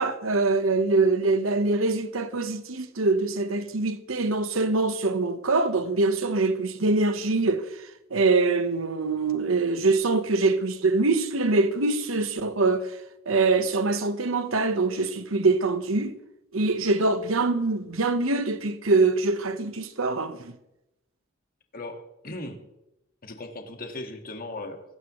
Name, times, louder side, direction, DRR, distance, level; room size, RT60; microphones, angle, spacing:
voice 1, 0.0-13.0 13.3-16.1 16.5-20.5, right 3 dB, 85° right, 1.1 m, -24 dB
voice 2, 21.7-22.6 23.2-24.8, left 2 dB, 45° left, 1.8 m, -37 dB
23.5 x 12.5 x 3.1 m
head